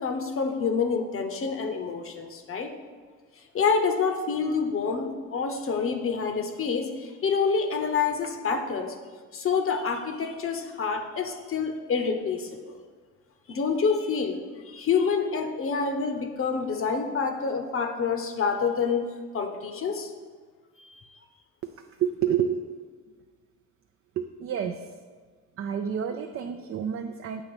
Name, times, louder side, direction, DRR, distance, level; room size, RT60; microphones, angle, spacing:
voice 1, 0.0-2.7 3.5-9.0 9.3-12.8 13.5-14.4 14.6-19.1 19.3-20.1 20.8-20.9, left 5 dB, 45° left, 5 dB, 0.8 m, -27 dB
voice 2, 22.0-22.8 24.2-24.9 25.6-27.4, right 8 dB, 45° right, 5 dB, 0.4 m, -29 dB
7.8 x 2.9 x 6.1 m, 1.5 s
cardioid pair, 90°, 30 cm